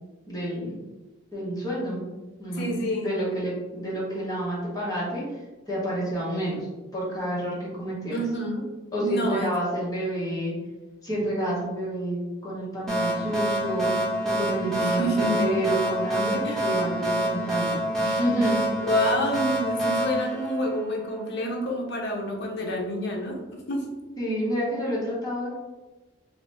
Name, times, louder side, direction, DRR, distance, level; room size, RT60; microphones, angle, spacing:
voice 1, 0.3-0.7 1.3-2.0 2.4-5.4 5.7-8.2 8.9-10.5 11.0-18.6 24.2-25.5, right 1 dB, 20° left, -7 dB, 1.1 m, -29 dB
voice 2, 2.6-3.1 8.1-8.6 9.0-9.5 14.8-15.5 16.4-16.7 18.9-23.8, equal, 60° left, 0 dB, 0.7 m, -28 dB
sound 1, 12.9-21.2, right 1 dB, 5° left, 0.8 m, -27 dB
2.8 x 2.7 x 3.3 m, 1.1 s
head